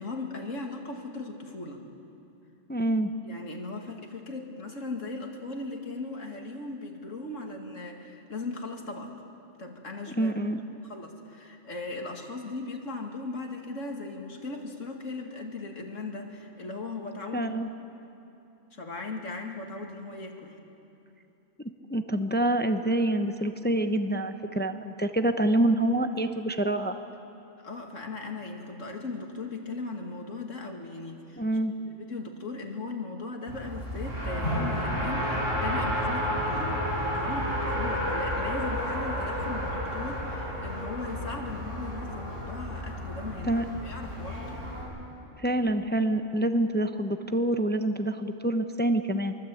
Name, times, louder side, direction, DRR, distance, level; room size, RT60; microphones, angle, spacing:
voice 1, 0.0-1.9 3.2-9.1 9.6-10.3 10.8-17.6 18.7-20.6 27.6-31.4 32.0-43.5 43.8-44.6, left 3 dB, 75° left, 2 dB, 2.5 m, -38 dB
voice 2, 2.7-3.1 10.2-10.6 17.3-17.7 21.9-26.9 31.4-31.7 43.4-43.6 45.4-49.4, right 1 dB, 10° left, 8 dB, 0.6 m, -26 dB
Race car auto racing, 33.5-44.8, equal, 75° right, 6.7 m, -31 dB
23.5 x 23.0 x 8.5 m, 2.9 s
omnidirectional pair, 1.3 m